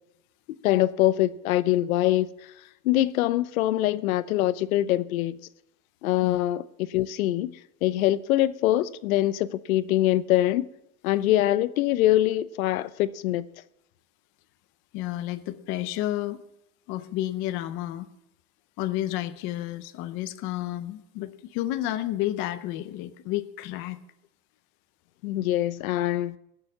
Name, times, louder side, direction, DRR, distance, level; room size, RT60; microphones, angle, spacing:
voice 1, 0.6-2.3 2.8-5.4 6.0-10.7 11.0-13.4 25.2-26.4, left 14 dB, 65° left, 0.7 m, -24 dB
voice 2, 14.9-16.4 16.9-18.1 18.8-24.0, left 14 dB, 25° left, 0.6 m, -31 dB
16.5 x 6.9 x 7.3 m
supercardioid pair, 150°, 45 cm